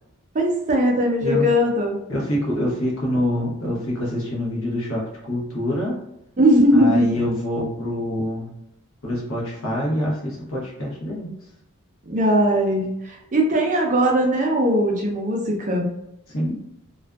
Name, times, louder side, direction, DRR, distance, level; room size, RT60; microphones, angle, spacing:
voice 1, 0.3-2.0 6.4-7.1 12.1-15.9, equal, 35° right, 0 dB, 0.4 m, -19 dB
voice 2, 2.1-6.0 6.7-8.5 9.0-11.3 16.3-16.6, left 1 dB, 65° left, -4 dB, 0.9 m, -25 dB
2.5 x 2.3 x 2.2 m, 0.84 s
head